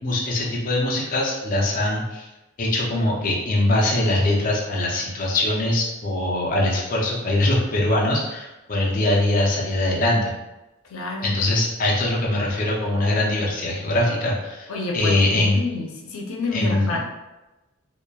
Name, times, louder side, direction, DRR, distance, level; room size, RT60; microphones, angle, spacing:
voice 1, 0.0-2.3 2.6-10.3 11.2-15.6 16.5-17.0, left 1 dB, 40° left, -3 dB, 0.5 m, -22 dB
voice 2, 10.9-11.3 14.7-17.0, left 3 dB, 90° left, -1 dB, 0.5 m, -29 dB
2.9 x 2.3 x 2.2 m, 1.0 s
head